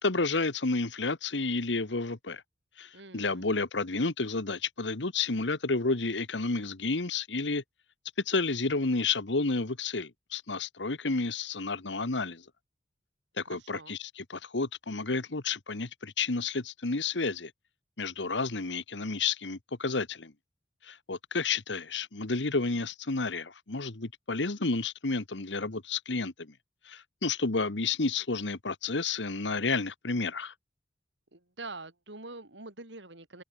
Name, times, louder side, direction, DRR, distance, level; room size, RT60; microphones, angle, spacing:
voice 1, 0.0-2.4 2.8-7.6 8.2-12.4 13.4-17.5 18.0-20.3 20.8-26.5 26.8-30.5, left 3 dB, 85° left, 1.5 m, -31 dB
voice 2, 2.9-3.5 13.5-14.0 31.3-33.4, right 3 dB, 80° right, 4.4 m, -45 dB
head